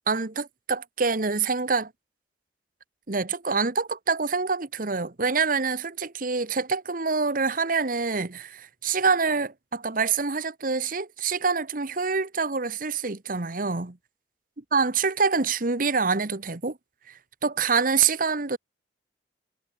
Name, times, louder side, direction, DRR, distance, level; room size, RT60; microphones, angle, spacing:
voice 1, 0.1-1.9 3.1-14.0 14.7-16.8 17.1-17.2 17.4-18.6, right 4 dB, 50° right, 1.2 m, -26 dB
head